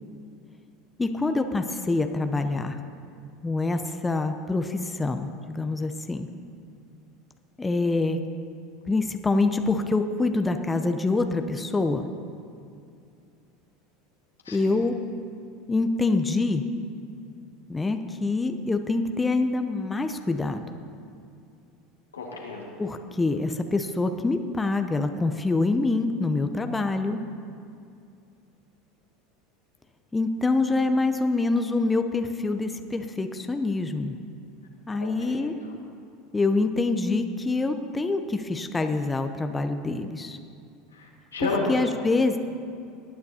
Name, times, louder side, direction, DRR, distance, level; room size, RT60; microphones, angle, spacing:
voice 1, 1.0-2.8 3.4-6.3 7.6-8.2 8.9-12.1 14.5-15.0 15.7-16.6 17.7-20.6 22.8-27.2 30.1-34.2 34.9-35.6 36.3-40.4 41.4-42.4, left 3 dB, 15° left, 7 dB, 0.7 m, -25 dB
voice 2, 22.1-22.7 35.0-35.7 40.9-41.7, left 3 dB, 90° left, -2 dB, 1.8 m, -32 dB
19.5 x 9.5 x 2.8 m, 2.5 s
hypercardioid pair, 80°, 0 cm